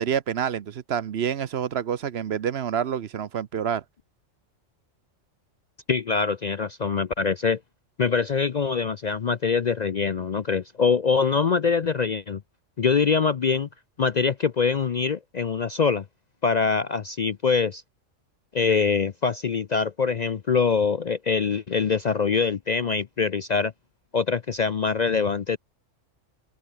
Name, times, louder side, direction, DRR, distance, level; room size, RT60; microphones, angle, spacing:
voice 1, 0.0-3.8, right 8 dB, 60° right, 1.0 m, -27 dB
voice 2, 5.9-7.6 8.0-12.4 12.8-13.7 14.0-16.0 16.4-17.8 18.5-23.7 24.1-25.6, left 5 dB, 50° left, 0.6 m, -24 dB
open air
omnidirectional pair, 1.3 m